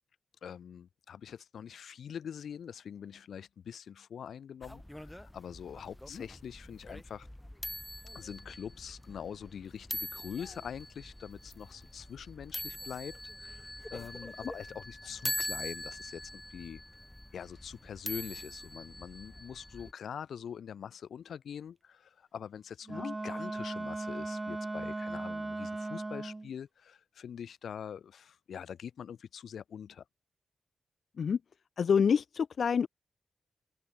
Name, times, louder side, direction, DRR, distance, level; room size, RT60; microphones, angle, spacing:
voice 1, 0.4-7.3 8.1-16.8 17.3-30.0, left 8 dB, 90° left, 2.0 m, -44 dB
sound 1, 4.6-19.9, left 1 dB, 5° left, 1.2 m, -43 dB
Wind instrument woodwind instrument, 22.9-26.5, right 2 dB, 20° right, 0.3 m, -37 dB
voice 2, 31.8-32.9, left 6 dB, 65° left, 0.9 m, -27 dB
wide cardioid pair, 110°, 0 cm